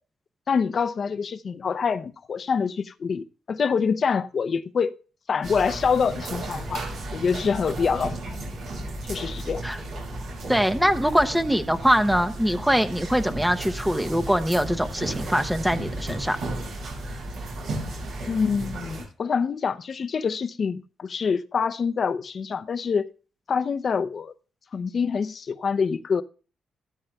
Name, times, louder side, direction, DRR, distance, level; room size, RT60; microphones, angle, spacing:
voice 1, 0.5-4.9 5.3-6.8 7.1-8.4 9.0-9.6 18.3-23.1 23.5-24.3 24.7-26.2, left 6 dB, 50° left, 0.6 m, -26 dB
sound 1, 5.4-19.0, right 2 dB, 75° right, 5.6 m, -34 dB
voice 2, 10.5-16.4, equal, 5° right, 0.7 m, -23 dB
15.0 x 12.5 x 2.3 m
cardioid pair, 75°, 0 cm